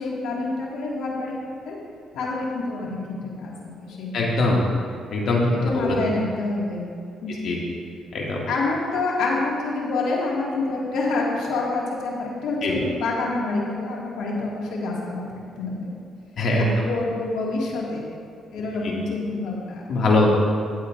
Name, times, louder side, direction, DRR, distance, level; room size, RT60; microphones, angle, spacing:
voice 1, 0.0-1.8 2.1-4.1 5.5-6.8 7.2-7.6 8.5-15.3 15.6-15.9 16.6-18.0 18.5-19.8, left 3 dB, 85° left, -4 dB, 2.0 m, -27 dB
voice 2, 4.1-4.6 5.1-5.4 5.7-6.0 7.4-7.6 8.1-8.4 12.6-12.7 16.4-16.7 19.9-20.4, left 2 dB, 65° left, -3 dB, 2.1 m, -21 dB
14.5 x 8.2 x 2.6 m, 2.2 s
cardioid pair, 90°, 0 cm